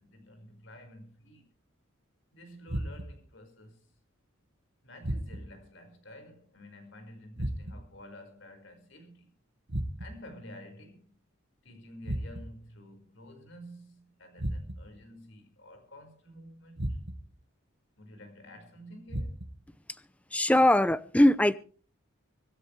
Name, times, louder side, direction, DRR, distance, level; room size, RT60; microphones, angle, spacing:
voice 1, 0.0-1.4 2.3-3.9 4.8-9.3 10.0-11.2 11.6-17.0 18.0-19.4, left 1 dB, 60° left, 5.3 m, -50 dB
sound 1, 2.7-3.3 5.0-5.7 7.4-8.0 9.7-10.3 12.0-12.7 14.4-15.0 16.8-17.4 19.1-19.7, right 1 dB, 55° right, 1.6 m, -35 dB
voice 2, 20.3-21.6, left 1 dB, 5° left, 0.6 m, -21 dB
25.0 x 13.0 x 3.3 m
head